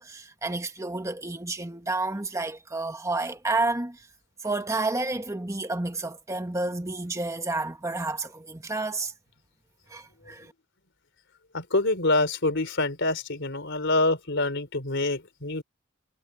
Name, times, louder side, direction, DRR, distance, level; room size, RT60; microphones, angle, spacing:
voice 1, 0.0-4.1 4.4-9.1 9.9-10.5, right 2 dB, 15° right, 1.3 m, -30 dB
voice 2, 11.5-15.6, left 2 dB, 60° left, 4.1 m, -26 dB
head